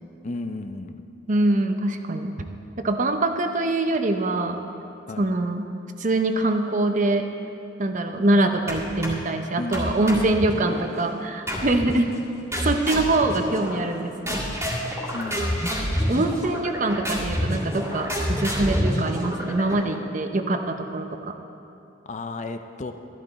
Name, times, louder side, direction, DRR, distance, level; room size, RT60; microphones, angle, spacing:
voice 1, 0.2-1.0 5.1-5.3 9.6-10.4 11.5-12.2 15.1-15.7 22.1-22.9, left 2 dB, 40° left, 8 dB, 0.5 m, -34 dB
voice 2, 1.3-2.3 2.8-4.6 5.2-5.7 6.0-7.3 7.8-12.1 12.6-14.5 16.1-21.3, right 2 dB, 40° right, 6 dB, 0.7 m, -24 dB
sound 1, 8.7-9.3 9.7-10.9 11.5-12.0 12.5-14.0 14.3-20.0, equal, 15° right, 2.0 m, -28 dB
13.0 x 11.5 x 4.1 m, 2.7 s
head